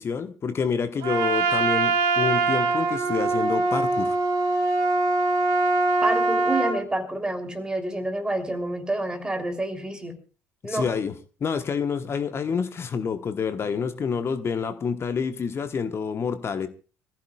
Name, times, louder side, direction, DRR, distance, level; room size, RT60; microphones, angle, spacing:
voice 1, 0.0-4.2 10.6-11.1 11.4-16.7, left 6 dB, 35° left, 10 dB, 1.3 m, -28 dB
Trumpet, 1.0-6.8, right 3 dB, 60° right, 2.9 m, -23 dB
voice 2, 6.0-10.2 10.6-10.9, right 1 dB, 10° right, 6 dB, 3.3 m, -28 dB
26.5 x 15.0 x 2.4 m, 0.36 s
figure-of-eight pair, 55°, 7 cm